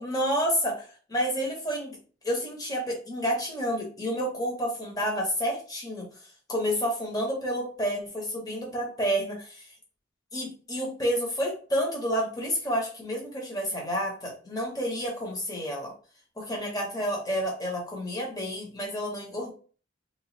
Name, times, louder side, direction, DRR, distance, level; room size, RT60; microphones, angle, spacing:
voice 1, 0.0-2.0 2.2-6.0 6.5-9.7 10.3-15.9 16.4-19.5, equal, 20° left, -2 dB, 1.1 m, -30 dB
3.0 x 2.5 x 4.0 m, 0.40 s
head